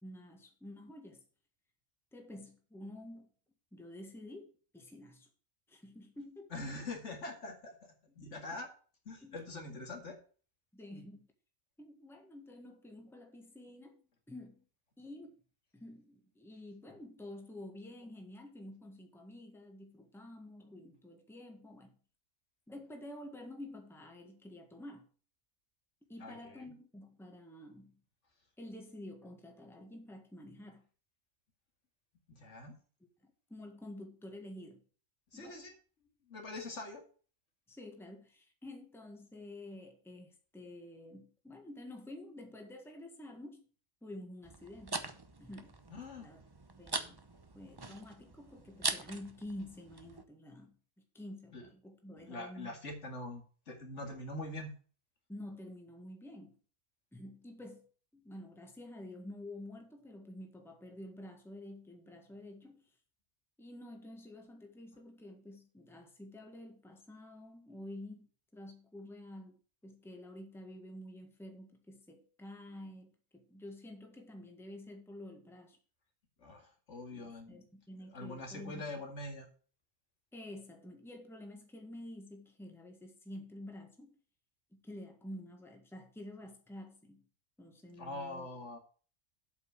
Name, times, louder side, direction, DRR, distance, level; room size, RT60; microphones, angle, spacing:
voice 1, 0.0-1.2 2.1-3.3 3.7-5.3 5.7-6.5 9.2-9.3 9.7-9.8 10.7-11.3 11.8-14.6 15.0-15.3 15.7-21.9 22.7-25.1 26.1-27.9 28.6-30.8 33.5-34.8 35.3-35.6 37.7-43.7 44.0-45.1 45.4-45.7 46.2-46.4 46.8-47.2 47.5-50.7 51.1-52.7 55.3-56.5 57.1-57.8 58.1-62.9 63.6-75.8 77.1-79.0 80.3-84.2 84.7-87.2 87.6-88.5, left 1 dB, ahead, 1.5 m, -49 dB
voice 2, 6.5-8.7 9.1-10.2 26.2-26.6 32.3-32.8 35.3-35.7 36.3-37.0 45.9-46.3 51.5-51.7 52.2-54.7 76.4-77.7 78.1-79.5 88.0-88.8, left 2 dB, 65° left, 2.3 m, -44 dB
sound 1, 44.4-50.2, right 3 dB, 20° right, 0.7 m, -42 dB
8.2 x 5.5 x 7.4 m
omnidirectional pair, 1.3 m